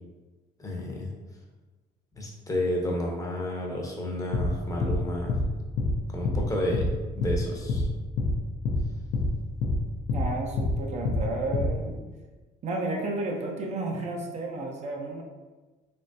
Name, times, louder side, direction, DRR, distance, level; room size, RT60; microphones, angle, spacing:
voice 1, 0.6-1.1 2.2-5.4 6.1-6.8 7.2-7.9, left 1 dB, 20° left, -1 dB, 0.7 m, -31 dB
sound 1, 4.3-4.5 4.8-5.0 5.3-5.4 5.8-5.9 6.2-6.4 6.7-6.9 7.2-7.4 7.7-7.8 8.2-8.3 8.6-8.8 9.1-9.3 9.6-9.8 10.1-10.2 10.6-10.7 11.0-11.2 11.5-11.7, left 3 dB, 70° left, 0.6 m, -26 dB
voice 2, 10.1-12.0 12.6-15.2, right 2 dB, 40° right, 0 dB, 0.6 m, -32 dB
3.4 x 3.1 x 2.7 m, 1.2 s
cardioid pair, 110°, 17 cm